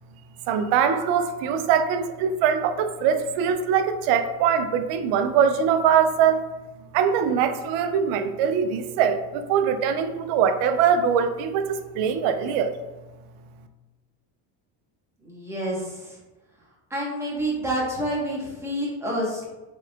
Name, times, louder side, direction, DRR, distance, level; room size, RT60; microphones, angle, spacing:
voice 1, 0.5-6.4 6.9-12.8, right 7 dB, 85° right, 9 dB, 0.6 m, -22 dB
voice 2, 15.2-16.2 16.9-19.5, right 1 dB, 5° right, -5 dB, 1.2 m, -28 dB
4.6 x 3.7 x 2.4 m, 1.1 s
cardioid pair, 125°, 48 cm